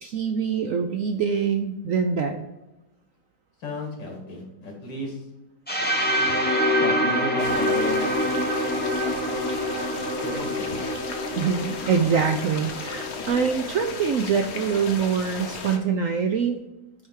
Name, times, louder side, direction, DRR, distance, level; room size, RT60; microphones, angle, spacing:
voice 1, 0.0-2.5 11.3-16.6, right 6 dB, 70° right, 5 dB, 0.7 m, -24 dB
voice 2, 3.6-5.2 6.8-8.0 10.2-10.8, left 1 dB, 85° left, 0 dB, 2.7 m, -33 dB
sound 1, 5.7-13.5, equal, 10° left, 0.6 m, -26 dB
sound 2, 7.4-15.8, left 5 dB, 60° left, 1.3 m, -36 dB
9.7 x 3.4 x 4.8 m, 1.0 s
omnidirectional pair, 1.9 m